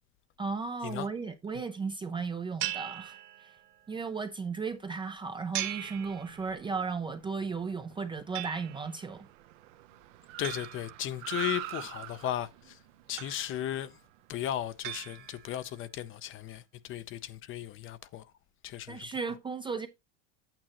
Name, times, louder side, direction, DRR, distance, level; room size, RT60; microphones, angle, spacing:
voice 1, 0.4-3.6 3.9-9.3 18.9-19.9, right 5 dB, 15° right, 0.4 m, -35 dB
sound 1, 2.6-3.8 5.5-6.8 8.3-9.1 10.4-11.6 13.2-13.9 14.8-15.7, right 15 dB, 55° right, 1.6 m, -40 dB
Car, 5.4-15.0, right 12 dB, 85° right, 0.9 m, -46 dB
voice 2, 10.4-12.8 13.1-14.0 14.3-18.2 18.6-19.0, left 12 dB, 35° left, 0.5 m, -36 dB
8.8 x 8.6 x 2.9 m
supercardioid pair, 145°, 38 cm